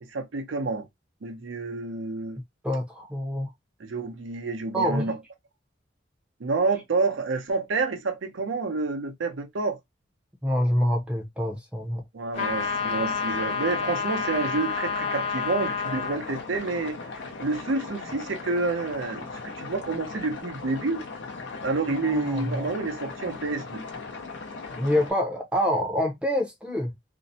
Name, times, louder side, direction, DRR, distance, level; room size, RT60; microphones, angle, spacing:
voice 1, 0.0-0.9 1.2-2.4 3.8-5.2 6.4-9.8 12.1-17.0 17.4-21.0 21.6-23.8, right 3 dB, 85° right, 0.6 m, -29 dB
voice 2, 2.6-3.5 4.7-5.1 10.4-12.0 22.0-22.7 24.8-26.9, equal, 5° right, 0.5 m, -26 dB
sound 1, 12.3-25.1, left 4 dB, 75° left, 0.7 m, -38 dB
sound 2, 12.3-16.2, left 6 dB, 35° left, 0.6 m, -29 dB
2.6 x 2.1 x 2.6 m
head